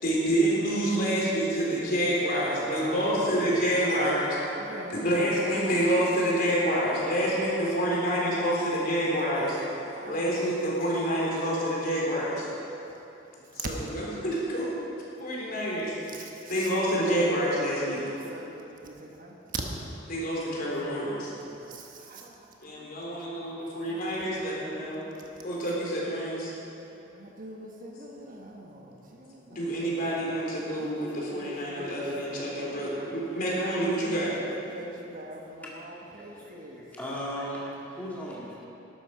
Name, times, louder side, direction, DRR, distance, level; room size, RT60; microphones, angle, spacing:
voice 1, 0.0-4.4 4.9-9.6 10.0-12.5 13.5-14.7 15.2-15.9 16.5-18.0 20.1-21.3 22.6-25.0 25.4-26.5 27.8-27.9 29.5-34.3, equal, 50° left, -5 dB, 3.6 m, -27 dB
voice 2, 2.3-4.2 4.5-6.0 7.4-7.5 7.9-8.0 8.3-8.4 8.8-8.9 9.7-10.3 16.5-16.7 18.0-19.3 21.3-21.6 22.1-22.3 23.9-24.0 27.2-28.8 29.5-30.0 30.8-32.1 32.4-33.6 34.7-36.8 38.0-38.2, right 1 dB, 50° right, 1 dB, 1.3 m, -41 dB
voice 3, 35.6-38.6, equal, 10° left, -6 dB, 2.1 m, -38 dB
12.5 x 12.0 x 5.0 m, 2.9 s
head